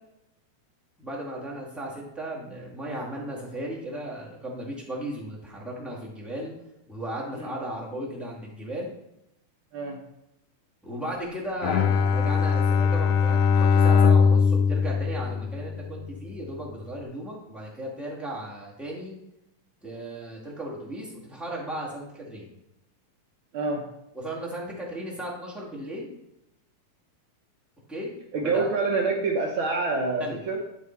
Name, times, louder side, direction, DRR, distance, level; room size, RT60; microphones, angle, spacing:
voice 1, 1.0-6.5 6.9-8.9 10.8-19.1 19.8-22.5 24.1-26.1 27.9-28.1 28.4-28.7 30.2-30.4, right 1 dB, ahead, -5 dB, 1.6 m, -35 dB
Bowed string instrument, 11.6-16.0, left 6 dB, 85° left, 2.0 m, -21 dB
voice 2, 28.3-30.6, right 3 dB, 75° right, 1 dB, 1.1 m, -26 dB
11.0 x 4.7 x 4.6 m, 0.86 s
omnidirectional pair, 3.5 m